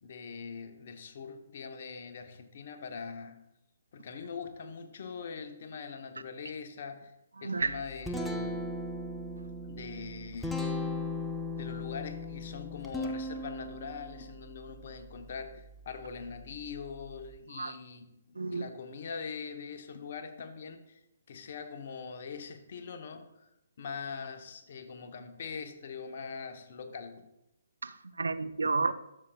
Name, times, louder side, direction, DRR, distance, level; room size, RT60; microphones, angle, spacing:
voice 1, 0.0-3.4 3.9-7.1 7.4-8.8 9.6-10.9 11.6-21.0 21.3-23.5 23.8-27.3 28.6-28.7, left 5 dB, 50° left, 0.9 m, -42 dB
Guitar, 7.6-17.4, left 2 dB, 5° left, 0.6 m, -38 dB
voice 2, 18.4-18.7 27.8-28.9, right 3 dB, 75° right, 0.4 m, -31 dB
12.0 x 7.0 x 2.3 m
figure-of-eight pair, 135°, 0 cm